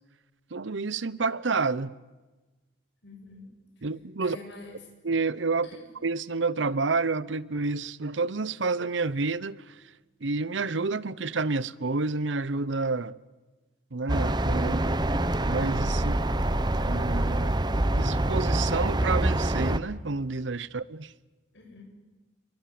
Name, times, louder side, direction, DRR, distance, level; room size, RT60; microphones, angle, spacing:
voice 1, 0.5-1.9 3.8-4.4 5.0-5.7 6.0-9.7 10.2-13.2 13.9-14.9 15.4-16.2 16.8-17.6 17.9-21.1, right 3 dB, 80° right, 0.8 m, -29 dB
voice 2, 3.0-3.5 3.8-3.9 4.2-4.8 5.6-5.8 20.7-20.8 21.5-21.9, left 2 dB, 70° left, 7.7 m, -47 dB
sound 1, 14.1-19.8, right 1 dB, 25° right, 0.9 m, -25 dB
28.5 x 24.0 x 7.7 m
head